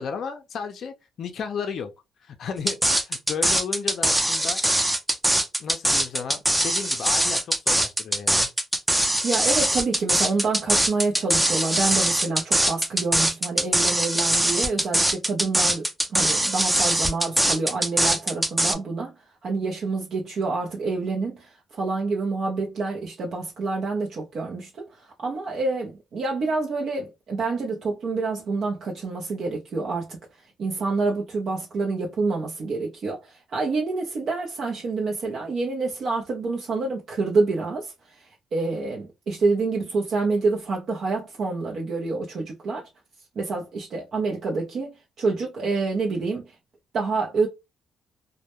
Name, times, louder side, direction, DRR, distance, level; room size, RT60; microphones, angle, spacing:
voice 1, 0.0-1.9 2.2-4.6 5.6-8.5, left 6 dB, 60° left, 0.4 m, -33 dB
sound 1, 2.7-18.7, right 1 dB, 10° right, 0.5 m, -22 dB
voice 2, 9.2-19.1 19.4-30.2 30.6-42.9 43.4-46.5 46.9-47.5, right 3 dB, 60° right, 0.6 m, -27 dB
2.1 x 2.1 x 2.8 m
cardioid pair, 90°, 0 cm